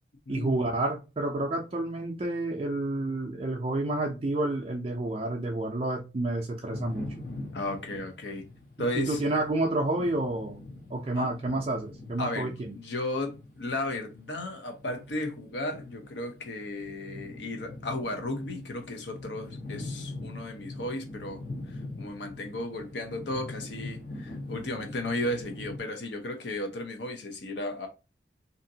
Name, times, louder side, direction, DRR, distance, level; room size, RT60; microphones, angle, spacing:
voice 1, 0.3-7.3 9.0-10.6 10.9-12.8, right 2 dB, 30° right, 0.4 m, -29 dB
sound 1, 6.7-25.8, left 2 dB, 50° left, 1.0 m, -43 dB
voice 2, 7.5-8.4 8.8-9.2 11.2-11.3 12.2-21.4 21.7-27.9, left 1 dB, 80° left, 0.7 m, -34 dB
2.8 x 2.5 x 2.7 m
head